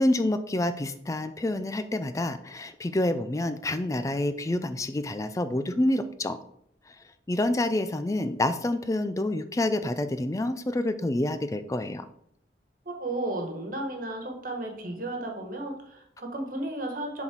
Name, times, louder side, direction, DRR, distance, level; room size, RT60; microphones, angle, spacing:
voice 1, 0.0-6.4 6.9-7.0 7.3-12.1, left 1 dB, 15° left, 11 dB, 0.3 m, -28 dB
voice 2, 12.8-17.2, right 2 dB, 45° right, 2 dB, 1.5 m, -34 dB
7.4 x 4.1 x 4.5 m, 0.73 s
head